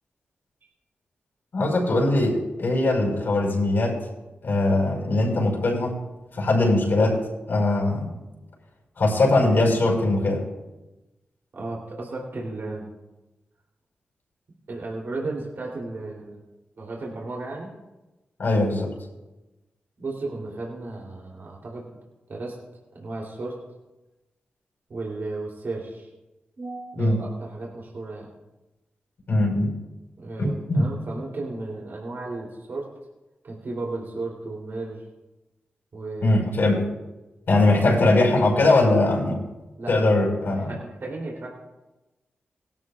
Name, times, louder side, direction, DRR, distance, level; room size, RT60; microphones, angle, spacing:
voice 1, 1.5-4.0 4.4-6.0 6.3-7.2 7.5-8.1 9.0-10.4 18.4-18.9 27.0-27.2 29.3-29.7 30.4-30.9 36.2-36.8 37.5-39.4 39.9-40.7, left 2 dB, 65° left, -2 dB, 5.0 m, -21 dB
voice 2, 11.5-12.9 14.7-16.4 16.8-17.7 20.0-21.9 22.3-22.6 22.9-23.6 24.9-26.1 26.6-28.3 30.2-32.9 33.4-35.1 35.9-36.4 37.6-37.7 39.8-40.0 40.7-41.5, right 2 dB, 65° right, -3 dB, 3.2 m, -34 dB
18.5 x 12.5 x 2.4 m, 1.0 s
cardioid pair, 60°, 4 cm